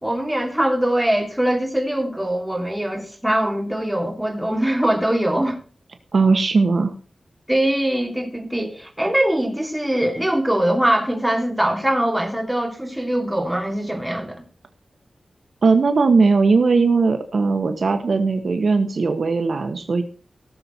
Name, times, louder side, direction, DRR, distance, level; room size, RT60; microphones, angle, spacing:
voice 1, 0.0-5.6 7.5-14.4, right 1 dB, 5° right, 3.0 m, -22 dB
voice 2, 6.1-6.9 15.6-20.0, right 4 dB, 55° right, 1.2 m, -18 dB
17.5 x 7.0 x 4.4 m
wide cardioid pair, 130°, 0 cm